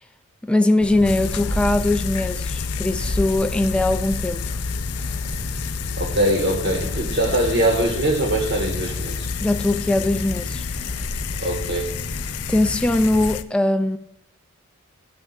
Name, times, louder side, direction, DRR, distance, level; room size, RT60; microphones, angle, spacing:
voice 1, 0.4-4.6 9.4-10.7 12.5-14.0, left 2 dB, 5° left, 0.4 m, -21 dB
sound 1, 0.8-13.3, left 1 dB, 50° left, 1.0 m, -33 dB
sound 2, 1.0-13.4, left 6 dB, 85° left, 0.5 m, -30 dB
sound 3, 1.3-11.1, equal, 70° right, 2.7 m, -36 dB
voice 2, 6.0-9.3 11.4-11.9, right 1 dB, 50° right, 1.7 m, -22 dB
11.0 x 8.8 x 2.5 m
head